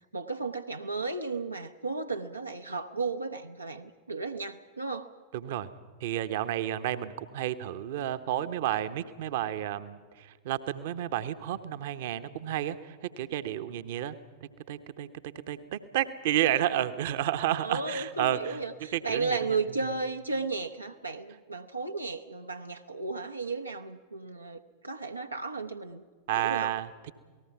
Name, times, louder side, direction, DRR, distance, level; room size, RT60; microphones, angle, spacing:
voice 1, 0.1-5.1 17.6-26.0 26.3-26.7, right 4 dB, 85° right, 5 dB, 0.8 m, -34 dB
voice 2, 5.3-5.7 6.0-14.2 14.7-15.1 15.5-18.6 18.9-19.4 26.3-27.1, right 12 dB, 55° right, 11 dB, 0.9 m, -31 dB
28.0 x 18.5 x 5.9 m, 1.4 s
figure-of-eight pair, 90°, 0 cm